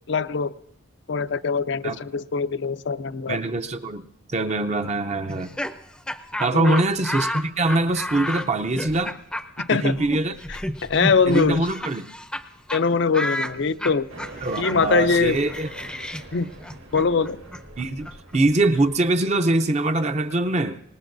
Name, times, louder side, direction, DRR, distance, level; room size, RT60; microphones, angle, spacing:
voice 1, 0.1-0.5 1.1-3.4 6.5-6.8 9.6-10.0 10.5-11.7 12.7-14.1 14.6-15.4 16.3-16.5 16.9-17.4, left 5 dB, 60° left, 0.5 m, -22 dB
voice 2, 3.3-4.0 4.3-5.6 6.4-9.2 9.7-10.3 11.3-12.1 14.4-15.7 17.8-20.8, right 2 dB, 35° right, 0.6 m, -23 dB
Laughter, 5.3-12.4 12.7-12.8 13.1-18.9, left 1 dB, 5° left, 0.6 m, -32 dB
sound 1, 14.1-18.6, right 2 dB, 70° right, 1.8 m, -42 dB
25.0 x 20.0 x 2.6 m
head